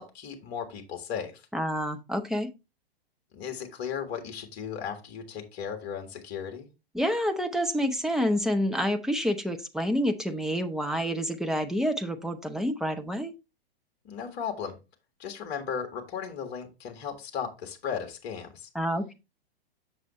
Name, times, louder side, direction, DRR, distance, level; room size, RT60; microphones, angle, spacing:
voice 1, 0.0-1.4 3.3-6.7 14.0-14.8 15.2-18.7, left 7 dB, 35° left, 1.7 m, -36 dB
voice 2, 1.5-2.5 6.9-13.3 18.7-19.1, equal, ahead, 0.5 m, -28 dB
7.4 x 6.6 x 3.1 m
figure-of-eight pair, 110°, 31 cm